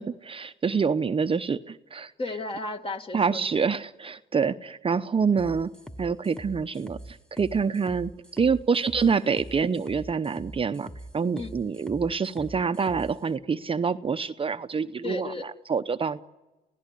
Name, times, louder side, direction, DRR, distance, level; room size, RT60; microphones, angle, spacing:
voice 1, 0.0-2.1 3.1-5.7 6.0-16.2, right 5 dB, 30° right, 9 dB, 0.8 m, -26 dB
voice 2, 2.2-3.5 11.4-11.5 15.0-15.4, left 2 dB, 30° left, 5 dB, 2.0 m, -33 dB
sound 1, 5.4-13.1, right 1 dB, 5° left, 1.3 m, -43 dB
30.0 x 16.5 x 10.0 m, 1.1 s
cardioid pair, 80°, 18 cm